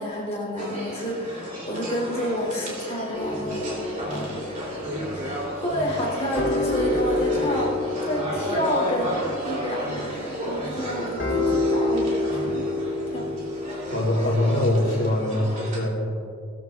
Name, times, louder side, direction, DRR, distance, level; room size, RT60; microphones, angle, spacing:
voice 1, 0.0-3.8 4.1-4.4 5.1-7.7 8.0-9.1 9.4-12.6 13.1-13.3, equal, 30° left, -4 dB, 3.1 m, -29 dB
sound 1, 0.6-15.8, equal, 35° right, 3.1 m, -33 dB
sound 2, 3.1-14.7, left 2 dB, 65° left, 3.5 m, -29 dB
voice 2, 13.9-16.3, left 1 dB, 80° left, -3 dB, 2.1 m, -23 dB
18.5 x 13.5 x 2.4 m, 2.3 s
head